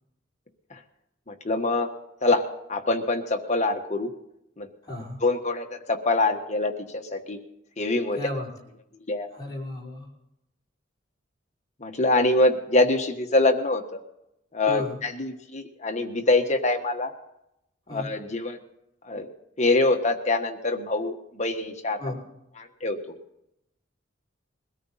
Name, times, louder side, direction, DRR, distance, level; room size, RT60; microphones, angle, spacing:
voice 1, 1.3-1.9 2.2-4.1 4.6-4.7 5.2-7.4 7.8-8.2 9.1-9.3 11.8-14.0 14.5-17.1 17.9-18.6 19.0-19.3 19.6-22.1 22.6-23.1, left 2 dB, 35° left, 4 dB, 1.4 m, -25 dB
voice 2, 4.9-5.2 8.2-8.5 9.3-10.1 14.7-14.9 17.9-18.1 22.0-22.2, left 2 dB, 20° left, -5 dB, 5.6 m, -33 dB
22.0 x 13.5 x 4.2 m, 0.83 s
head